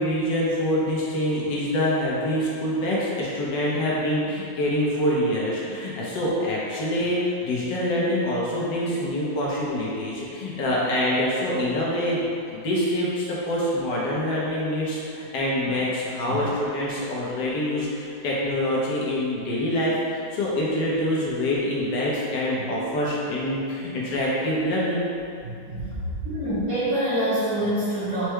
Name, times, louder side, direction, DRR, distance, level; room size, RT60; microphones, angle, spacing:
voice 1, 0.0-20.0 20.3-25.1, left 1 dB, 75° left, -6 dB, 1.5 m, -25 dB
voice 2, 25.4-25.9 26.2-28.3, right 1 dB, 50° right, -11 dB, 1.2 m, -26 dB
4.5 x 2.2 x 4.6 m, 2.6 s
omnidirectional pair, 2.0 m